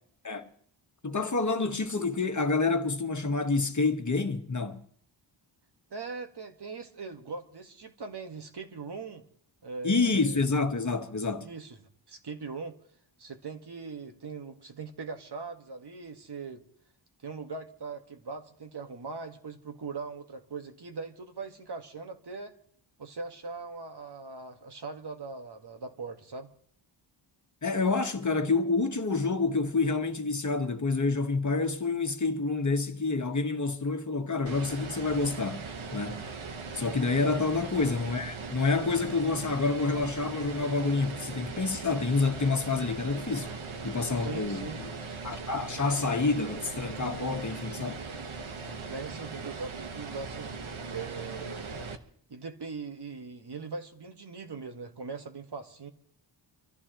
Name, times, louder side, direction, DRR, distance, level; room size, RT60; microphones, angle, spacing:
voice 1, 1.0-4.8 9.8-11.5 27.6-36.2 36.7-43.5 43.8-44.9 45.2-48.0, left 3 dB, 35° left, 1.4 m, -28 dB
voice 2, 5.9-9.2 9.6-10.4 11.4-12.8 13.2-16.6 17.2-22.5 23.0-26.5 37.2-37.4 44.2-44.8 48.9-50.5 50.9-51.9 52.3-55.9, right 4 dB, 55° right, 1.7 m, -40 dB
sound 1, 34.5-52.0, right 4 dB, 80° right, 1.5 m, -39 dB
26.0 x 14.5 x 3.1 m
wide cardioid pair, 80°, 47 cm